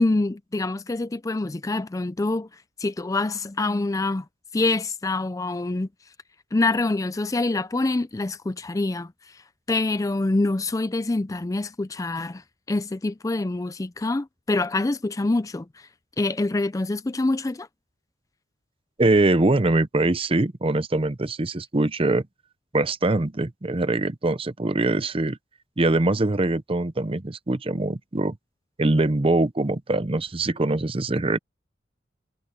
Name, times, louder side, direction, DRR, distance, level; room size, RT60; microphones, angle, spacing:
voice 1, 0.0-2.5 2.8-4.2 4.5-5.9 6.5-9.4 9.7-15.9 16.2-17.7, left 2 dB, 20° left, 0.4 m, -25 dB
voice 2, 19.0-22.2 22.7-25.4 25.8-28.4 28.8-31.4, right 2 dB, 30° right, 0.7 m, -23 dB
head